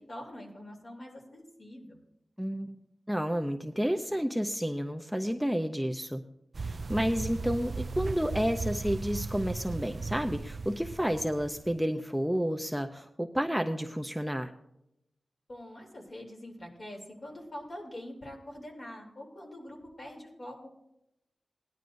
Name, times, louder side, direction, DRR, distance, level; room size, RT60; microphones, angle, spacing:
voice 1, 0.0-2.0 15.5-20.7, left 1 dB, 45° left, -1 dB, 3.0 m, -44 dB
voice 2, 2.4-2.8 3.1-6.2 6.6-14.5, equal, ahead, 5 dB, 0.5 m, -30 dB
sound 1, 6.5-11.8, right 4 dB, 55° right, 0.4 m, -37 dB
18.5 x 11.0 x 2.6 m, 0.84 s
wide cardioid pair, 90°, 0 cm